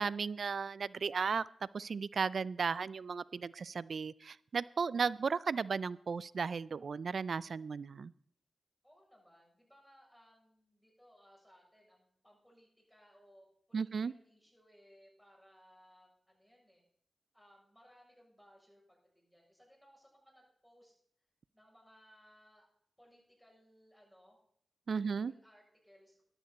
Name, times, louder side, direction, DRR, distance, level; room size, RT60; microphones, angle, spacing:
voice 1, 0.0-1.4 1.7-8.1 13.7-14.1 24.9-25.3, right 5 dB, 70° right, 21 dB, 0.4 m, -35 dB
voice 2, 8.8-16.8 17.3-20.9 21.5-22.7 23.0-24.4 24.9-26.2, equal, ahead, -1 dB, 7.2 m, -64 dB
15.0 x 11.5 x 4.2 m, 0.66 s
cardioid pair, 40°, 0 cm